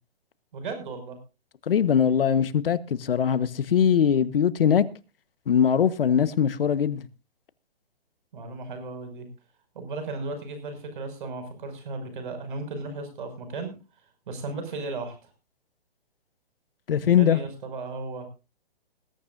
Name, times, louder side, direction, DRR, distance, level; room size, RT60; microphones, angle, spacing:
voice 1, 0.5-1.2 8.3-9.3 9.7-13.7 14.3-15.2 17.0-18.3, right 3 dB, 55° right, 6.1 m, -35 dB
voice 2, 1.7-4.8 5.5-7.1 16.9-17.4, left 8 dB, 65° left, 1.3 m, -21 dB
20.5 x 13.0 x 2.6 m
hypercardioid pair, 145°, 30 cm